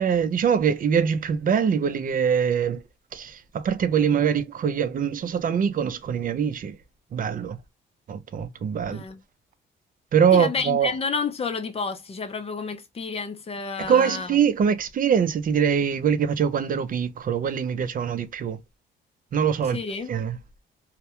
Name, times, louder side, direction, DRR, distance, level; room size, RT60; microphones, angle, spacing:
voice 1, 0.0-2.8 3.1-6.8 7.1-7.6 8.1-9.0 10.1-10.9 13.8-18.6 19.3-19.8 20.1-20.4, right 7 dB, 45° right, 0.5 m, -23 dB
voice 2, 8.9-9.2 10.3-14.4 19.7-20.1, left 5 dB, 30° left, 0.6 m, -30 dB
2.3 x 2.1 x 2.8 m
cardioid pair, 90°, 20 cm